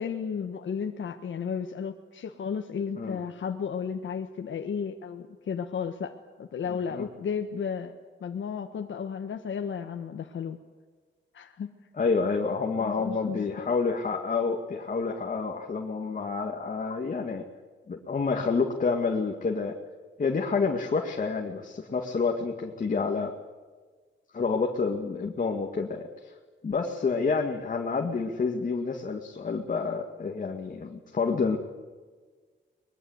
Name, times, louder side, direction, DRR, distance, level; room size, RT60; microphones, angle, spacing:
voice 1, 0.0-7.9 8.2-10.6 11.3-11.7 12.8-13.4, left 6 dB, 75° left, 5 dB, 1.5 m, -33 dB
voice 2, 6.7-7.1 12.0-17.4 17.9-19.8 20.2-23.3 24.3-26.3 26.6-31.6, left 4 dB, 40° left, 3 dB, 2.1 m, -28 dB
23.5 x 21.5 x 8.1 m, 1.4 s
wide cardioid pair, 135°, 20 cm